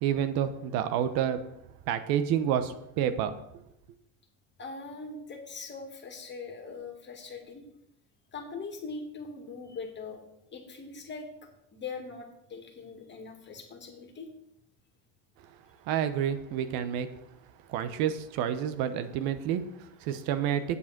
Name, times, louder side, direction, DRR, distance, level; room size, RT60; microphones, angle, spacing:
voice 1, 0.0-1.4 1.9-3.3 15.8-17.1 17.7-20.6, right 9 dB, 65° right, 11 dB, 1.1 m, -29 dB
voice 2, 4.6-7.6 8.3-10.2 10.5-14.3, left 4 dB, 30° left, 4 dB, 2.2 m, -41 dB
8.6 x 7.3 x 5.9 m, 0.80 s
supercardioid pair, 120°, 38 cm